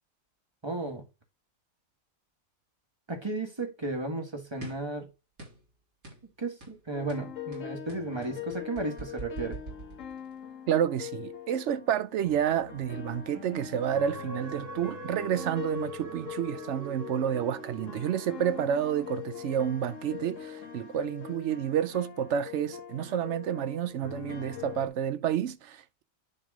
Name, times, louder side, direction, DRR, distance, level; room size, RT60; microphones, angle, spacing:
voice 1, 0.6-1.0 3.1-5.1 6.4-9.6, right 2 dB, 20° right, 1.5 m, -34 dB
sound 1, 4.6-4.9 5.4-5.7 6.0-6.3 6.6-6.8 7.1-10.4, right 3 dB, 85° right, 3.8 m, -43 dB
sound 2, 6.9-24.9, left 9 dB, 65° left, 1.4 m, -43 dB
voice 2, 10.7-26.0, right 9 dB, 65° right, 0.9 m, -30 dB
sound 3, 13.8-19.5 20.0-20.1, right 3 dB, 40° right, 1.4 m, -43 dB
10.0 x 3.5 x 3.7 m
omnidirectional pair, 1.4 m